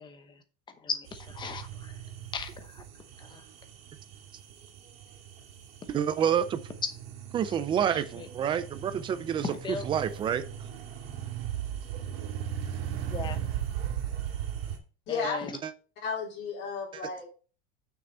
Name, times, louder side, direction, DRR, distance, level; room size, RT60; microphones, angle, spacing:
voice 1, 0.8-1.7 2.3-2.8 3.3-3.4 8.2-8.3 9.5-9.9 13.1-13.4 15.1-15.5, left 5 dB, 15° left, 9 dB, 0.8 m, -37 dB
sound 1, 1.1-14.8, right 10 dB, 80° right, 2.3 m, -38 dB
voice 2, 5.9-6.6 7.3-10.4, right 9 dB, 15° right, 13 dB, 0.4 m, -28 dB
voice 3, 15.1-15.5 16.0-17.2, left 4 dB, 35° left, -2 dB, 3.7 m, -33 dB
6.8 x 6.1 x 4.4 m, 0.37 s
supercardioid pair, 165°, 30 cm